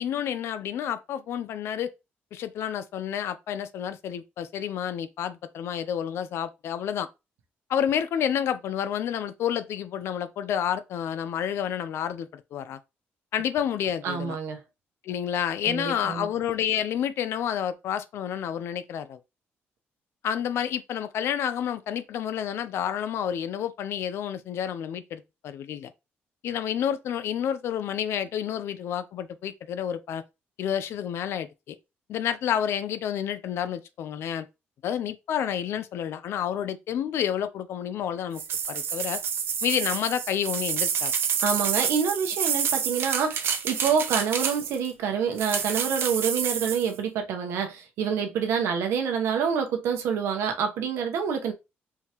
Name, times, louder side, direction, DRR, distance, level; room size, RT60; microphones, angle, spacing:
voice 1, 0.0-1.9 2.3-7.1 7.7-12.8 13.3-14.4 15.0-19.2 20.2-25.9 26.4-30.2 30.6-31.8 32.1-34.5 34.8-38.4 38.7-39.2 39.6-41.1, left 9 dB, 70° left, 0.5 m, -29 dB
voice 2, 14.0-14.6 15.7-16.3 41.4-51.5, right 6 dB, 90° right, 0.9 m, -27 dB
sound 1, 38.3-44.9 45.4-46.9, right 7 dB, 60° right, 0.7 m, -28 dB
4.6 x 3.5 x 2.9 m
cardioid pair, 125°, 4 cm